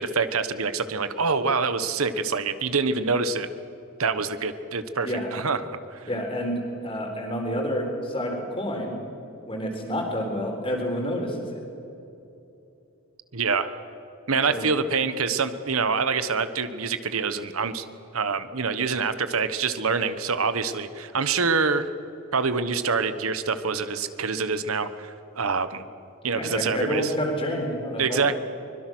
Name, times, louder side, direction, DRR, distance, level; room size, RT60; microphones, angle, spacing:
voice 1, 0.0-3.5 4.0-6.0 13.3-13.7 14.3-17.9 18.1-21.9 22.3-25.8 26.2-27.1 28.0-28.4, right 4 dB, 80° right, 12 dB, 1.2 m, -26 dB
voice 2, 6.1-9.0 9.5-11.6 14.5-14.7 26.3-28.4, equal, 25° left, 2 dB, 4.2 m, -29 dB
24.0 x 22.0 x 6.2 m, 2.8 s
head